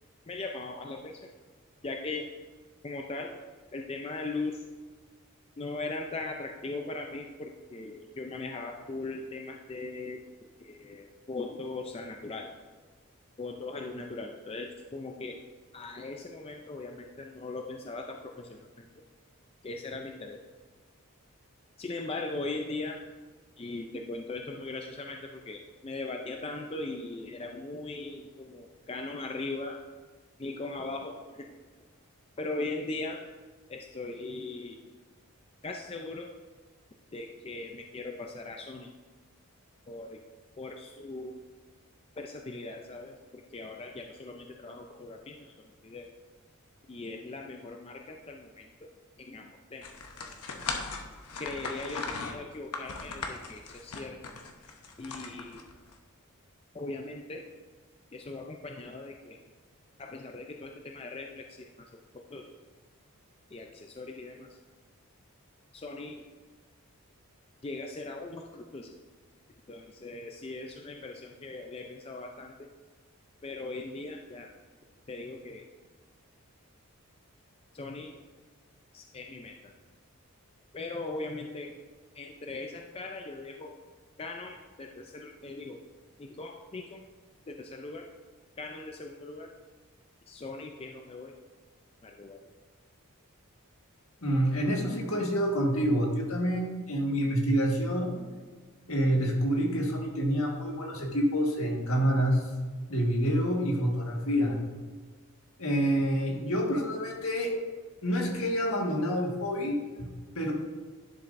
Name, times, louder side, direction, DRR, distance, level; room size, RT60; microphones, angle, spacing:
voice 1, 0.3-1.3 1.8-2.3 2.8-3.3 3.7-4.6 5.6-12.5 13.4-15.4 15.7-18.9 19.6-20.4 21.8-23.0 23.6-29.8 30.4-31.5 32.4-33.3 33.7-34.8 35.6-36.3 37.1-38.9 39.9-40.2 40.6-41.4 42.2-46.1 46.9-48.9 49.2-50.1 51.4-54.2 55.0-55.6 56.7-57.4 58.1-59.4 60.0-62.5 63.5-64.6 65.7-66.2 67.6-69.0 69.7-72.7 73.4-74.5 75.1-75.7 77.7-78.2 78.9-79.7 80.7-81.8 82.1-83.8 84.2-85.8 86.2-87.0 87.5-88.1 88.6-89.5 90.3-91.3 92.0-92.4, left 2 dB, 25° left, 3 dB, 0.4 m, -39 dB
sound 1, 49.8-55.9, left 4 dB, 90° left, 0.9 m, -38 dB
voice 2, 94.2-98.1 98.9-102.4 102.9-104.6 105.6-107.5 108.0-110.1 110.3-110.5, equal, 70° left, 0 dB, 1.6 m, -27 dB
11.0 x 7.0 x 2.6 m, 1.4 s
head